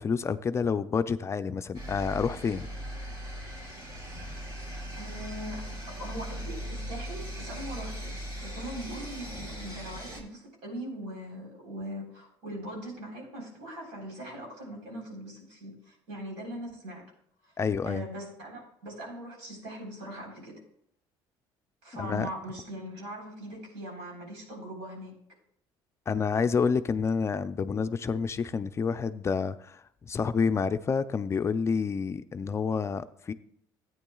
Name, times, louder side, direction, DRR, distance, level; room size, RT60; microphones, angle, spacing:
voice 1, 0.0-2.6 17.6-18.0 22.0-22.3 26.1-33.3, left 5 dB, 30° left, 11 dB, 0.4 m, -28 dB
sound 1, 1.7-10.2, equal, 55° right, 3.5 m, -39 dB
voice 2, 5.0-17.0 17.4-17.5 17.8-20.6 21.8-25.1, right 1 dB, 90° right, 0 dB, 3.9 m, -41 dB
14.0 x 9.1 x 2.3 m, 0.69 s
cardioid pair, 105°, 10 cm